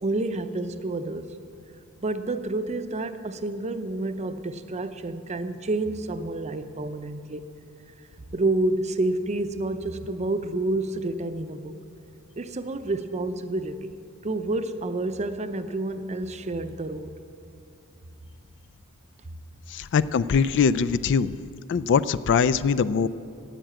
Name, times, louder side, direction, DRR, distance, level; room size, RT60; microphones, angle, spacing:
voice 1, 0.0-1.3 2.0-7.5 8.3-11.8 12.4-13.9 14.2-17.1, right 2 dB, 30° right, 10 dB, 0.6 m, -29 dB
voice 2, 19.7-21.3 21.7-23.1, left 6 dB, 55° left, 14 dB, 0.3 m, -22 dB
13.5 x 9.1 x 7.6 m, 2.5 s
head